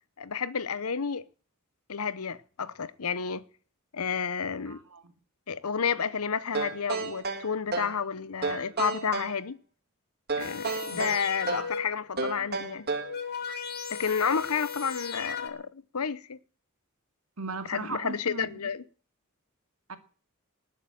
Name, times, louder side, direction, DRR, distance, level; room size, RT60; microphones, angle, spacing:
voice 1, 0.2-1.2 1.9-3.4 3.9-4.8 5.5-9.6 10.4-12.9 13.9-16.4 17.7-18.8, left 6 dB, 85° left, 0.9 m, -31 dB
voice 2, 4.7-5.1 10.8-11.1 17.4-18.6 19.9-20.0, right 3 dB, 80° right, 2.3 m, -38 dB
sound 1, 6.5-8.0 8.4-9.4 10.3-11.8 12.2-13.2, right 4 dB, 45° right, 2.0 m, -32 dB
sound 2, 10.4-12.1 12.8-15.5, left 6 dB, 45° left, 2.1 m, -37 dB
19.5 x 8.9 x 7.7 m
head